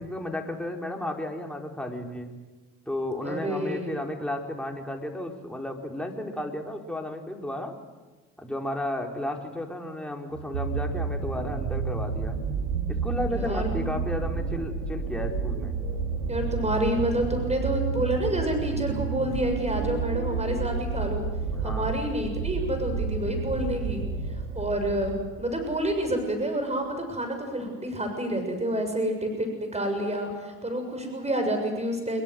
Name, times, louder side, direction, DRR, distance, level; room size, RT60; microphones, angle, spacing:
voice 1, 0.0-2.3 2.9-7.7 8.4-12.4 12.9-15.7 21.5-21.9, left 1 dB, ahead, 1 dB, 4.9 m, -33 dB
voice 2, 3.2-3.9 13.3-13.7 16.3-21.3 21.6-24.0 24.5-32.2, right 1 dB, 15° right, 5 dB, 7.0 m, -28 dB
sound 1, 10.3-25.9 26.7-26.8, right 5 dB, 85° right, 3.3 m, -30 dB
25.5 x 22.5 x 8.1 m, 1.2 s
hypercardioid pair, 60°, 44 cm